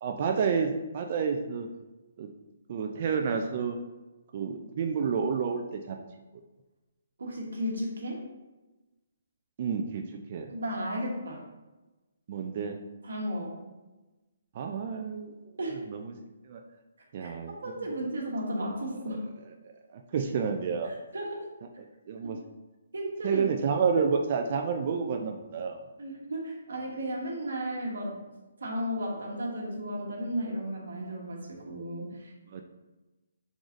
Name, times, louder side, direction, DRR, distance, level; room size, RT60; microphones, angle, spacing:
voice 1, 0.0-1.7 2.2-2.3 2.7-3.8 4.3-6.0 9.6-10.0 10.3-10.5 12.3-12.8 14.5-15.3 15.9-16.1 16.5-16.6 17.1-17.5 19.9-20.9 22.1-22.4 23.2-25.8 32.5-32.6, right 6 dB, 40° right, 4 dB, 0.3 m, -29 dB
voice 2, 7.2-8.2 10.5-11.4 13.0-13.6 15.6-15.8 17.2-17.3 17.6-19.3 20.8-21.5 22.2-22.3 22.9-23.4 26.0-28.2 28.6-32.3, equal, 80° right, -2 dB, 1.2 m, -34 dB
4.7 x 3.8 x 2.5 m, 1.1 s
hypercardioid pair, 155°, 0 cm